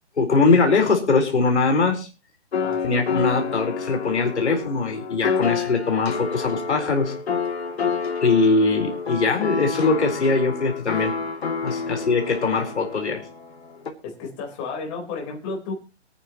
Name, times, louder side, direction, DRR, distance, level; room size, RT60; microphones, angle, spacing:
voice 1, 0.2-2.1 2.8-7.1 8.2-11.1 11.6-13.2, left 4 dB, 80° left, 3 dB, 4.4 m, -21 dB
sound 1, 2.5-13.9, left 5 dB, 65° left, 2.8 m, -29 dB
voice 2, 2.6-3.0 11.9-12.0 14.0-15.7, left 4 dB, 25° left, 0 dB, 4.2 m, -33 dB
24.5 x 9.2 x 3.0 m, 0.30 s
hypercardioid pair, 155°, 34 cm